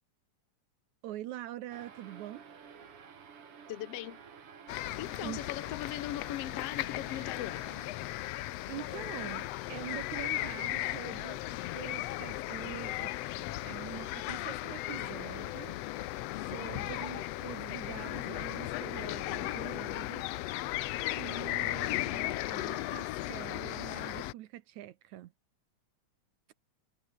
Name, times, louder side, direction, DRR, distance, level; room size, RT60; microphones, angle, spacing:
voice 1, 1.0-2.5 5.2-5.4 8.3-11.4 11.7-13.1 13.4-20.2 21.1-25.3, right 14 dB, 70° right, 2.1 m, -45 dB
sound 1, 1.7-7.9, right 6 dB, 45° right, 3.1 m, -52 dB
voice 2, 3.7-4.2 5.0-7.7 16.3-16.6, left 14 dB, 60° left, 1.7 m, -39 dB
sound 2, 4.7-24.3, left 16 dB, 90° left, 1.4 m, -36 dB
omnidirectional pair, 3.8 m